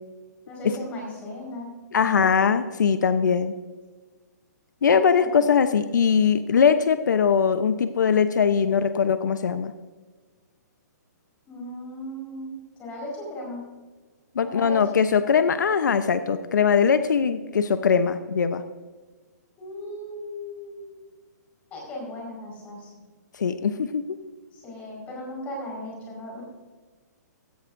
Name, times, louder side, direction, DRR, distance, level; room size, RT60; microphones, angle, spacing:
voice 1, 0.4-2.3 5.2-5.4 11.5-13.6 14.4-15.0 19.6-20.9 21.7-22.9 24.5-26.4, left 1 dB, 15° left, -2 dB, 5.0 m, -37 dB
voice 2, 1.9-3.5 4.8-9.7 14.4-18.6 23.4-24.0, left 6 dB, 80° left, 10 dB, 0.8 m, -21 dB
16.0 x 15.5 x 2.6 m, 1.3 s
hypercardioid pair, 170°, 10 cm